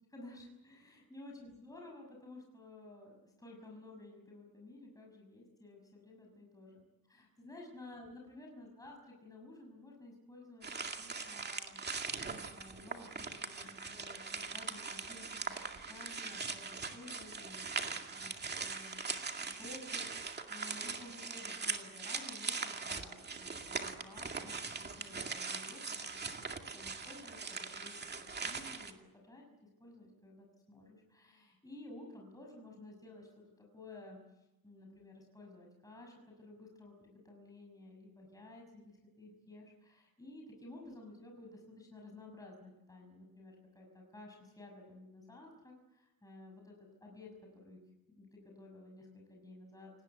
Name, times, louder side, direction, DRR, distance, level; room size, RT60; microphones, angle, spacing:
voice 1, 0.1-6.8 7.1-10.7 11.0-11.8 12.2-19.1 19.4-27.9 28.2-47.3 47.6-47.8 48.2-49.9, left 2 dB, 10° left, 0 dB, 6.2 m, -54 dB
sound 1, 10.6-28.9, right 4 dB, 25° right, 2.2 m, -41 dB
28.5 x 18.5 x 8.0 m, 0.94 s
cardioid pair, 155°, 39 cm